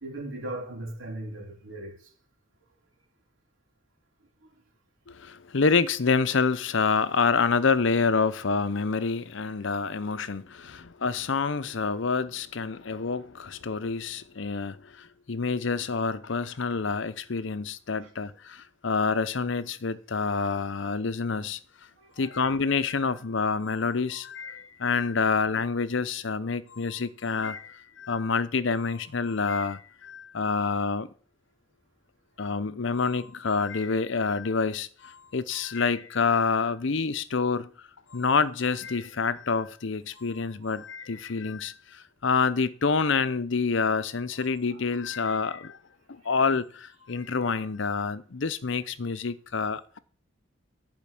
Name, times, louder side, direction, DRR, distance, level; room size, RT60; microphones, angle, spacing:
voice 1, 0.0-2.1 4.4-4.5 9.4-9.5 10.6-10.8 18.0-18.1 22.0-22.3 40.6-40.8 44.7-44.8, right 1 dB, 85° right, 3.6 m, -39 dB
voice 2, 5.1-21.6 22.2-31.1 32.4-37.7 38.1-45.8 46.1-50.0, left 4 dB, 70° left, 0.7 m, -27 dB
10.5 x 5.2 x 8.4 m
head